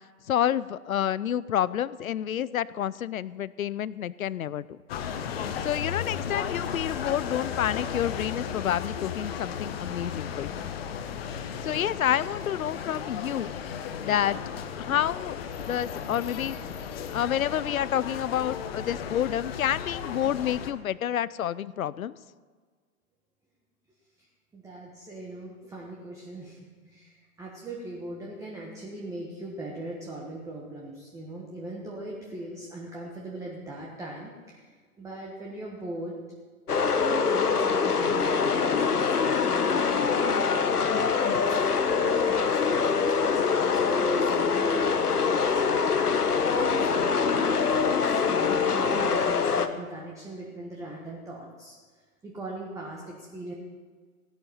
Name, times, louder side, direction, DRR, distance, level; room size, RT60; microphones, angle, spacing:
voice 1, 0.3-4.7 5.6-10.6 11.6-13.5 14.0-14.4 14.8-15.4 15.7-16.6 17.1-22.2, left 10 dB, 65° left, 19 dB, 0.6 m, -29 dB
sound 1, 4.9-20.7, left 7 dB, 40° left, 1.2 m, -35 dB
voice 2, 24.5-36.1 36.9-40.7 41.3-45.8 46.5-51.8 52.2-53.5, right 1 dB, 5° right, -2 dB, 1.3 m, -40 dB
sound 2, 36.7-49.7, left 5 dB, 85° left, 1.2 m, -24 dB
15.5 x 11.5 x 5.5 m, 1.5 s
figure-of-eight pair, 130°, 45 cm